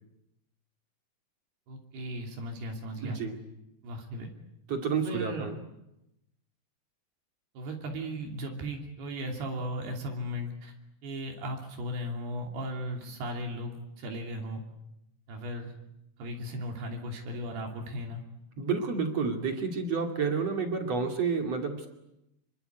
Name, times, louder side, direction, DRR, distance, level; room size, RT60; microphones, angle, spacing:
voice 1, 1.7-3.2 3.8-4.3 4.9-5.5 7.5-10.7 11.0-14.6 15.3-15.7 16.2-18.2, equal, 70° right, 2 dB, 4.8 m, -36 dB
voice 2, 3.0-3.3 4.7-5.5 18.6-21.9, right 5 dB, 40° right, 3 dB, 3.3 m, -30 dB
26.5 x 24.5 x 8.1 m, 0.86 s
omnidirectional pair, 4.8 m